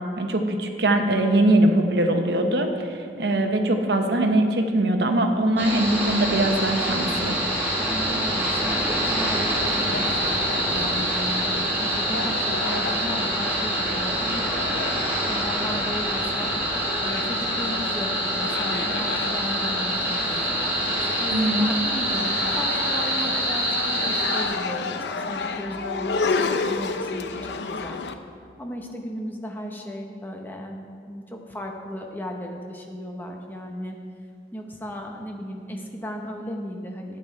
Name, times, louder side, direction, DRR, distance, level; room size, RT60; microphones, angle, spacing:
voice 1, 0.2-7.4 21.3-21.7, right 1 dB, 70° right, 4 dB, 1.0 m, -22 dB
sound 1, 5.6-24.4, equal, 10° right, 1.7 m, -25 dB
voice 2, 7.8-14.5 15.3-16.6 17.0-20.4 21.2-28.0 28.6-30.8 31.1-34.0 34.5-37.2, equal, 10° left, 2 dB, 0.9 m, -35 dB
sound 2, 9.5-28.1, left 4 dB, 75° left, 0.5 m, -32 dB
11.0 x 8.7 x 4.5 m, 2.3 s
head